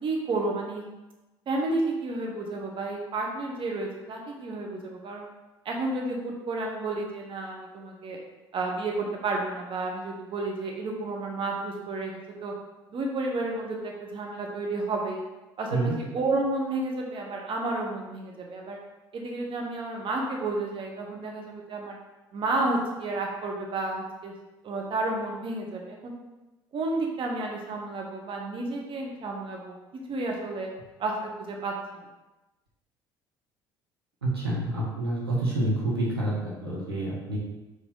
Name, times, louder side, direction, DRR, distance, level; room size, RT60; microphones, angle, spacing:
voice 1, 0.0-0.8 1.5-5.2 5.6-8.2 8.5-12.5 12.9-15.2 15.6-18.8 19.1-22.0 22.3-24.3 24.6-26.1 26.7-29.7 30.1-30.7 31.0-31.1 31.4-32.0, right 2 dB, 45° right, 0 dB, 1.2 m, -31 dB
voice 2, 34.2-37.4, right 1 dB, 90° right, -6 dB, 1.6 m, -28 dB
5.6 x 5.0 x 3.9 m, 1.1 s
figure-of-eight pair, 60°, 13 cm